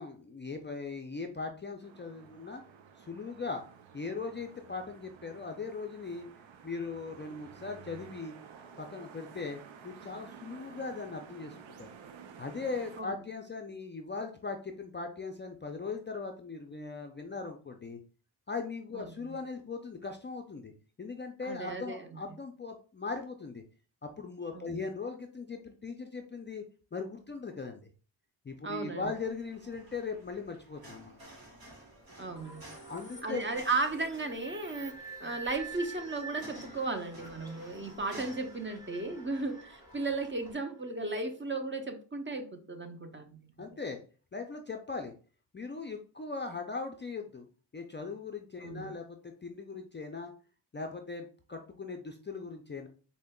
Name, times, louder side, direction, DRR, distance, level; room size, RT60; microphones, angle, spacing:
voice 1, 0.0-2.6 3.0-3.6 3.9-6.3 6.6-8.4 8.8-11.9 12.4-18.0 18.5-20.7 21.0-23.6 24.0-26.6 26.9-27.8 28.4-31.2 32.3-32.4 32.9-33.4 43.6-44.0 44.3-45.1 45.5-47.5 47.7-50.3 50.7-52.9, left 4 dB, 25° left, 4 dB, 0.4 m, -39 dB
sound 1, 1.8-13.0, right 7 dB, 80° right, 0.6 m, -52 dB
voice 2, 18.9-19.3 21.4-22.0 24.5-24.6 28.6-29.1 32.2-32.6 33.2-34.9 35.2-43.4 48.6-49.0, right 3 dB, 25° right, 6 dB, 0.6 m, -35 dB
sound 2, 29.0-40.5, right 1 dB, 50° right, 1.5 m, -54 dB
sound 3, 32.4-41.0, right 2 dB, 10° right, 1.4 m, -48 dB
5.0 x 2.1 x 2.2 m, 0.39 s
cardioid pair, 50°, 46 cm